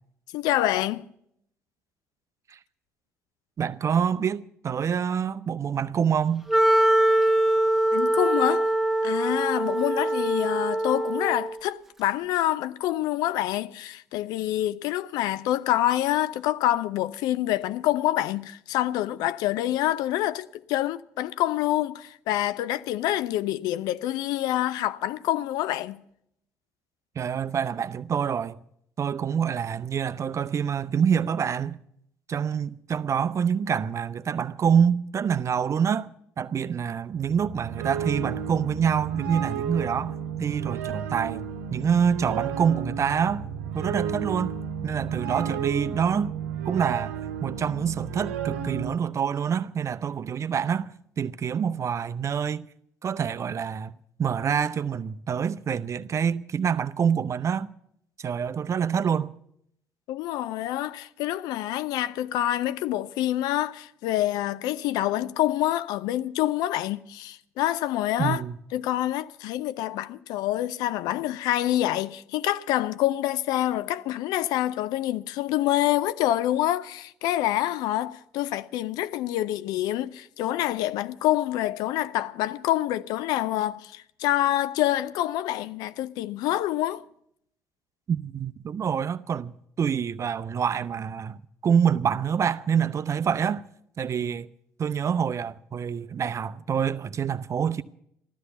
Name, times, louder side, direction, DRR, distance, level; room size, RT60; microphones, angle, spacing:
voice 1, 0.3-1.1 7.9-8.7 9.0-26.0 60.1-68.4 68.7-87.0, left 14 dB, 70° left, 0.5 m, -26 dB
voice 2, 3.6-6.5 27.2-28.6 29.0-31.8 32.3-36.1 36.4-40.1 40.4-43.5 43.7-46.4 46.7-52.7 53.0-57.7 58.2-59.3 68.2-68.5 88.1-93.6 94.0-94.5 94.8-97.8, right 7 dB, 45° right, 0.6 m, -26 dB
Wind instrument woodwind instrument, 6.5-11.6, right 1 dB, 5° right, 1.4 m, -23 dB
Nice Weirdish Melody, 37.2-48.9, right 7 dB, 85° right, 0.9 m, -32 dB
14.5 x 13.0 x 6.9 m
hypercardioid pair, 50°, 7 cm